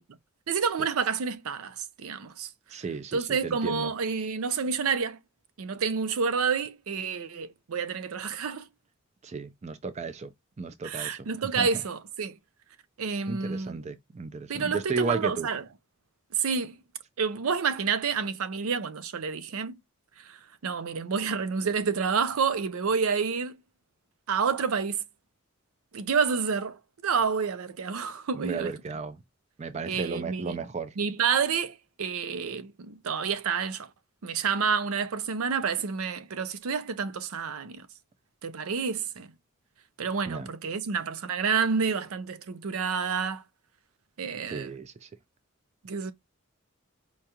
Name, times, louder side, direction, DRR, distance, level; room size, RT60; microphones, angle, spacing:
voice 1, 0.5-2.5 3.1-5.2 5.6-8.7 10.8-12.4 13.0-13.8 14.5-15.6 16.3-16.8 17.2-19.8 20.2-23.6 24.3-25.0 25.9-28.7 29.9-30.6 31.0-33.9 34.2-37.9 38.4-39.3 40.0-43.4 44.2-44.7 45.8-46.1, right 6 dB, 85° right, 0.5 m, -29 dB
voice 2, 2.7-3.9 9.2-11.3 11.5-11.7 13.3-15.5 28.3-29.2 29.6-31.0 40.3-40.5 44.5-45.1, right 4 dB, 30° right, 0.4 m, -34 dB
4.5 x 2.3 x 2.7 m
head